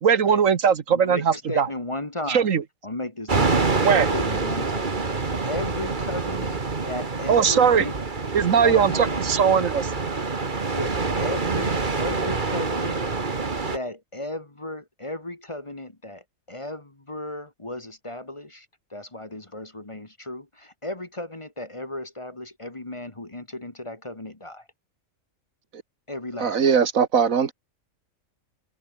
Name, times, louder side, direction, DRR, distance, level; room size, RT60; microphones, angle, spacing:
voice 1, 0.0-1.7 2.3-2.6 3.8-4.1 7.3-7.8 8.3-9.9, right 7 dB, 70° right, 1.7 m, -20 dB
voice 2, 0.9-2.5 2.8-3.7 4.1-7.9 8.6-9.2 10.7-13.0 13.6-24.7 26.1-26.8, left 1 dB, 25° left, 1.6 m, -35 dB
sound 1, 3.3-13.8, right 4 dB, 35° right, 1.9 m, -26 dB
voice 3, 26.4-27.5, right 6 dB, 90° right, 2.0 m, -20 dB
open air
omnidirectional pair, 1.4 m